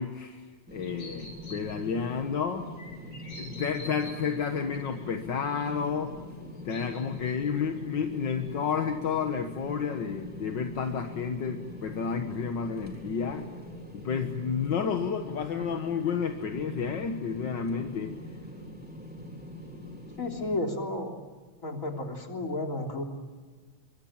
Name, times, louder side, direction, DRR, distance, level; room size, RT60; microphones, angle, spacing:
voice 1, 0.0-2.7 3.4-6.1 6.6-13.5 13.9-18.1, left 6 dB, 50° left, 5 dB, 1.5 m, -31 dB
sound 1, 0.7-20.6, left 1 dB, 5° right, 3.4 m, -43 dB
sound 2, 0.8-1.8 2.7-4.3 4.7-4.9 5.5-5.6 6.6-7.3 7.8-7.9 8.3-8.4, left 1 dB, 90° left, 7.8 m, -47 dB
voice 2, 20.2-21.1 21.6-23.0, left 2 dB, 25° left, 2 dB, 3.6 m, -32 dB
26.5 x 23.5 x 7.3 m, 1.5 s
omnidirectional pair, 3.4 m